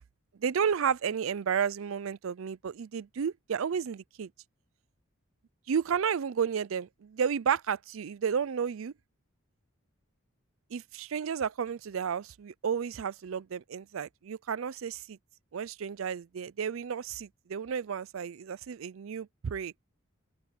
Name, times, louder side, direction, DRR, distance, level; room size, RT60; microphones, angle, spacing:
voice 1, 0.4-4.3 5.7-8.9 10.7-15.2 15.5-19.7, right 7 dB, 75° right, 0.4 m, -32 dB
open air
head